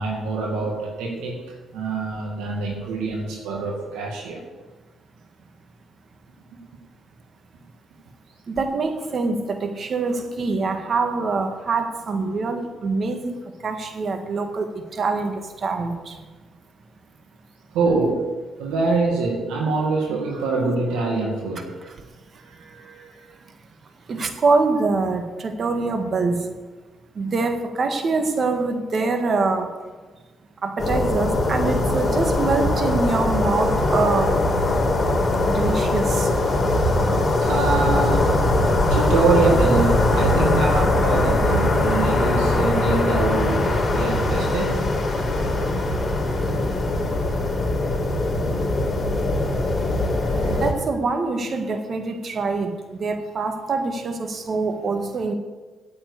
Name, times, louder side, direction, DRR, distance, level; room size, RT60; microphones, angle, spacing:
voice 1, 0.0-1.4 1.7-4.4 17.7-18.3 18.6-21.8 22.4-23.3 37.4-38.3 38.9-44.8 50.2-50.8, right 3 dB, 85° right, -1 dB, 2.1 m, -24 dB
voice 2, 8.5-16.2 24.1-26.5 27.1-29.7 30.6-34.4 35.5-36.3 50.5-55.3, right 3 dB, 50° right, 6 dB, 1.7 m, -24 dB
sound 1, 30.8-50.7, left 2 dB, 25° left, 3.6 m, -21 dB
9.2 x 7.6 x 8.4 m, 1.3 s
supercardioid pair, 65°, 0 cm